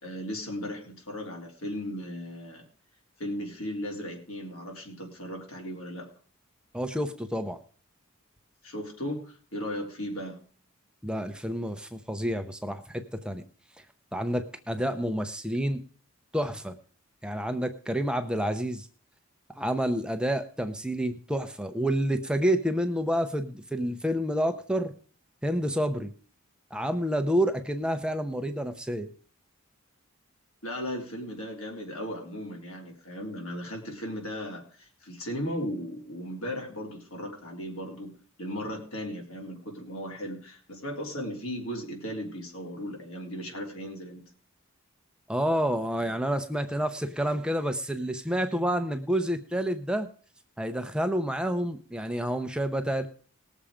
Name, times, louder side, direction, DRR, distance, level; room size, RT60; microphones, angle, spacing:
voice 1, 0.0-2.6 3.2-6.1 8.6-10.4 30.6-44.3, equal, 75° left, 1 dB, 3.7 m, -36 dB
voice 2, 6.7-7.6 11.0-13.4 14.1-15.8 16.3-16.8 17.2-18.9 19.6-24.9 25.4-26.1 26.7-29.1 45.3-50.1 50.6-53.1, equal, 5° right, 7 dB, 0.7 m, -29 dB
19.5 x 7.2 x 5.0 m, 0.42 s
head